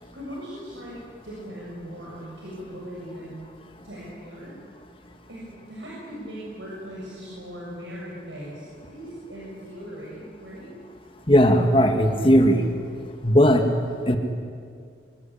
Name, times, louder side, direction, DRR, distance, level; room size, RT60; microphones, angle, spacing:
voice 1, 0.1-3.4 3.8-4.6 5.3-10.7, equal, 90° right, -5 dB, 7.0 m, -39 dB
voice 2, 11.3-12.6 13.2-13.7 14.1-14.2, equal, 30° left, 5 dB, 1.8 m, -17 dB
26.0 x 25.5 x 8.7 m, 2.2 s
head